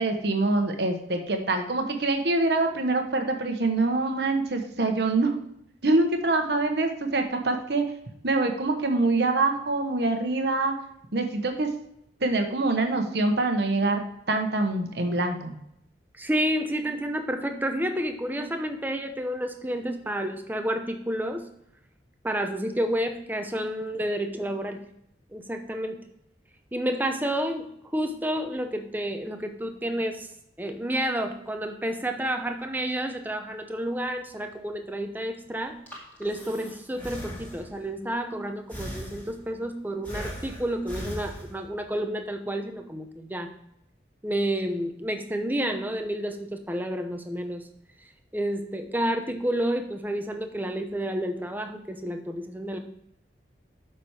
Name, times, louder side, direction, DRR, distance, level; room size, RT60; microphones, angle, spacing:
voice 1, 0.0-5.4 5.8-7.8 8.2-10.7 11.1-11.7 12.2-14.0 14.3-15.5, right 2 dB, 65° right, 5 dB, 1.1 m, -25 dB
voice 2, 16.2-21.5 22.2-24.8 25.3-26.0 26.7-30.3 30.6-35.8 36.2-43.5 44.2-47.7 48.3-52.8, right 1 dB, 10° right, 6 dB, 0.8 m, -30 dB
Breathing, 35.6-37.9 38.7-39.6 40.0-41.9, equal, 10° left, 2.1 m, -39 dB
7.3 x 6.1 x 4.8 m, 0.75 s
head